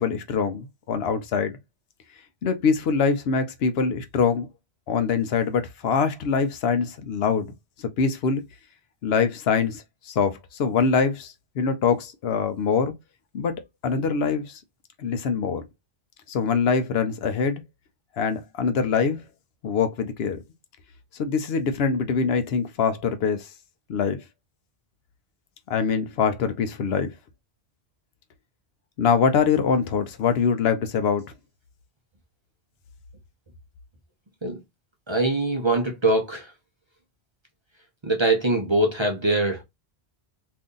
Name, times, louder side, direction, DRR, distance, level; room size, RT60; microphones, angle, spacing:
voice 1, 0.0-1.6 2.4-4.5 4.9-7.5 8.0-8.4 9.0-12.9 13.3-14.6 15.0-15.7 16.3-17.6 18.2-19.2 19.6-20.4 21.2-23.5 23.9-24.2 25.7-27.1 29.0-31.2, left 5 dB, 70° left, 0.8 m, -24 dB
voice 2, 35.1-36.5 38.0-39.6, right 2 dB, 30° right, 0.6 m, -23 dB
2.7 x 2.5 x 3.7 m
omnidirectional pair, 1.1 m